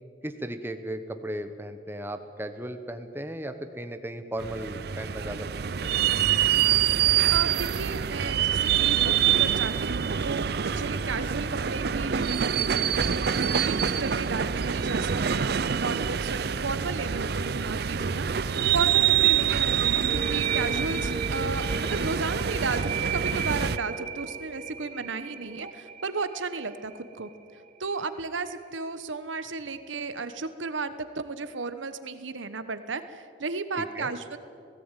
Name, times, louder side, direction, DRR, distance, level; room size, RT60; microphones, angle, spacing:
voice 1, 0.2-6.1 33.8-34.1, right 1 dB, 10° right, 8 dB, 1.1 m, -36 dB
sound 1, 4.4-23.8, right 8 dB, 55° right, 0.5 m, -26 dB
voice 2, 7.3-12.9 13.4-18.3 18.7-27.3 27.8-34.4, right 4 dB, 85° right, 11 dB, 1.1 m, -34 dB
sound 2, 19.9-27.4, right 5 dB, 40° right, 1.4 m, -35 dB
17.5 x 17.0 x 9.1 m, 2.5 s
head